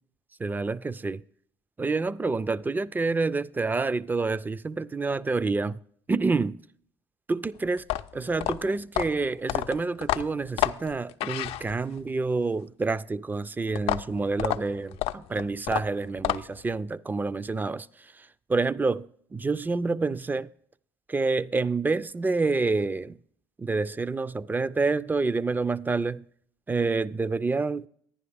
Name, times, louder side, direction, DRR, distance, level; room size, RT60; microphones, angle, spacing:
voice 1, 0.4-1.2 1.8-5.8 6.1-6.6 7.3-7.9 8.1-20.5 21.1-23.2 23.6-26.2 26.7-27.9, right 3 dB, 15° right, 0.3 m, -28 dB
sound 1, 7.8-12.1 13.8-16.7, left 13 dB, 60° left, 0.4 m, -30 dB
10.5 x 10.0 x 3.4 m
hypercardioid pair, 60°, 11 cm